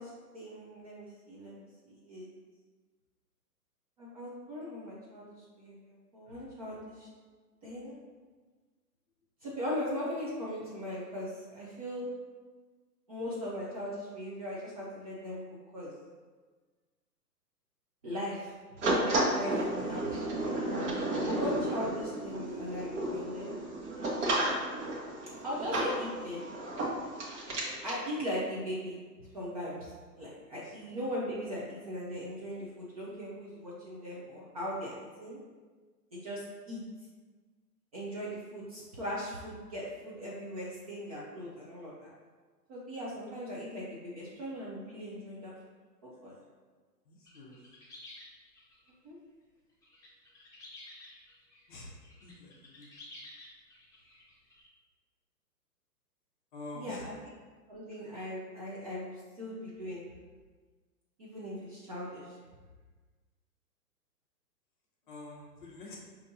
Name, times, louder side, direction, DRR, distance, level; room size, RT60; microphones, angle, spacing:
voice 1, 0.0-2.3 4.0-7.1 7.6-8.0 9.4-12.1 13.1-15.4 15.7-15.9 18.0-18.5 19.3-20.3 21.2-23.6 25.4-26.4 27.8-35.4 36.1-36.8 37.9-42.1 42.7-45.5 46.0-46.3 49.0-49.2 56.7-57.1 57.7-60.0 61.2-62.4, equal, 25° right, -6 dB, 0.5 m, -39 dB
sound 1, 18.8-28.0, right 1 dB, 45° right, 1.2 m, -32 dB
voice 2, 47.1-47.6 51.7-51.9 52.2-53.0 56.5-57.1 65.0-66.0, left 2 dB, 30° left, -3 dB, 0.6 m, -47 dB
sound 2, 47.2-48.9 49.8-54.7, left 2 dB, 5° left, 1.1 m, -52 dB
5.1 x 2.8 x 2.7 m, 1.4 s
figure-of-eight pair, 125°, 49 cm